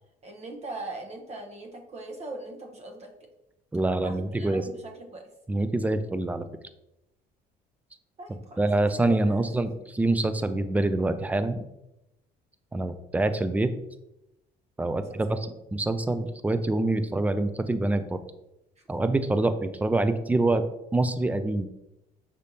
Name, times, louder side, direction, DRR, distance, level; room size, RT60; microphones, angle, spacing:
voice 1, 0.2-3.1 4.0-5.2 8.2-9.6 14.9-15.5, right 2 dB, 40° right, 2 dB, 0.9 m, -41 dB
voice 2, 3.7-4.6 5.5-6.4 8.6-11.6 12.7-13.7 14.8-18.2 18.9-20.6 20.9-21.7, right 2 dB, 10° right, 10 dB, 0.3 m, -25 dB
5.2 x 3.4 x 2.7 m, 0.88 s
cardioid pair, 110°, 17 cm